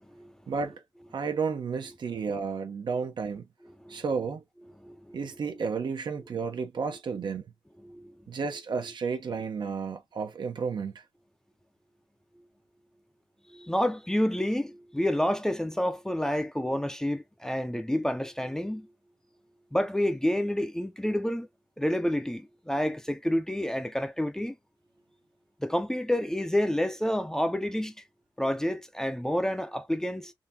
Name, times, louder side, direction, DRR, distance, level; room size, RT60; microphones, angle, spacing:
voice 1, 0.5-0.8 1.1-3.4 3.9-4.4 5.1-7.4 8.3-10.9, right 5 dB, 65° right, 0.8 m, -32 dB
voice 2, 4.8-5.2 7.8-8.1 13.5-18.9 19.7-21.5 21.8-24.6 25.6-27.9 28.4-30.3, left 1 dB, 5° left, 0.6 m, -29 dB
3.8 x 2.7 x 2.7 m
wide cardioid pair, 130°, 8 cm